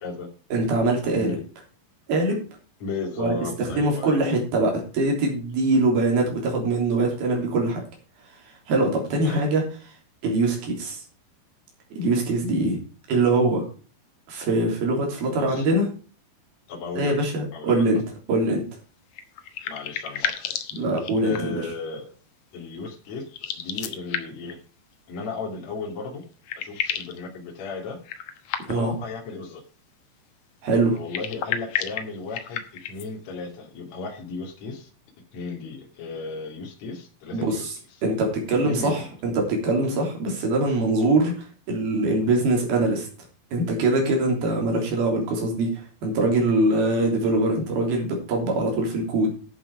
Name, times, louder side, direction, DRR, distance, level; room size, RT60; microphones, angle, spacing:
voice 1, 0.5-1.4 2.1-2.4 3.2-7.8 8.7-9.6 10.2-11.0 11.9-12.8 13.1-13.6 14.3-15.9 17.0-18.0 18.3-18.6 20.7-21.7 28.7-28.9 30.6-31.0 37.3-37.7 38.0-43.1 43.5-49.3, right 2 dB, 65° right, 1 dB, 5.2 m, -23 dB
voice 2, 2.8-4.2 9.2-9.4 15.3-15.7 16.7-17.2 17.5-17.9 19.7-20.6 21.2-22.1 22.5-23.3 23.5-24.6 25.1-26.2 26.6-28.0 28.7-29.6 30.9-34.9 35.3-37.7 38.6-39.1, left 4 dB, 45° left, 1 dB, 3.4 m, -35 dB
sound 1, 19.1-21.6 23.3-24.5 25.9-26.0 26.2-27.2 28.0-29.0 30.9-33.1, left 9 dB, 65° left, 2.0 m, -32 dB
12.0 x 7.7 x 4.9 m, 0.38 s
omnidirectional pair, 4.8 m